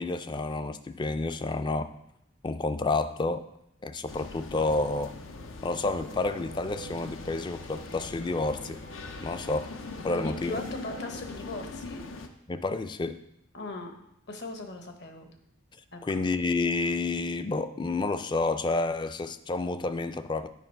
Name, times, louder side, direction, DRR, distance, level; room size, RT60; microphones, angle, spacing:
voice 1, 0.0-1.9 2.4-3.4 3.8-5.1 5.6-8.8 9.2-9.7 10.0-10.6 12.5-13.2 16.0-20.5, left 3 dB, 25° left, 11 dB, 0.3 m, -29 dB
sound 1, 4.1-12.3, left 3 dB, 90° left, 0.7 m, -41 dB
sound 2, 6.1-11.1, right 4 dB, 50° right, 0.4 m, -50 dB
voice 2, 10.1-12.0 13.5-15.3 15.9-16.2, left 2 dB, 60° left, 5 dB, 1.0 m, -39 dB
8.2 x 5.2 x 4.5 m, 0.80 s
head